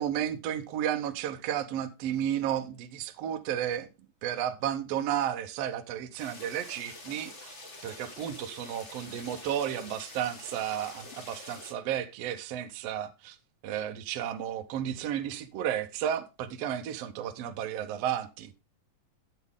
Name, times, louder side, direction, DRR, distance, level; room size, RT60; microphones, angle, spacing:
voice 1, 0.0-3.9 4.2-7.6 7.8-13.4 13.6-18.5, right 10 dB, 70° right, 1.5 m, -33 dB
sound 1, 6.2-11.7, left 2 dB, 35° left, 1.2 m, -46 dB
10.5 x 8.2 x 3.7 m
omnidirectional pair, 3.9 m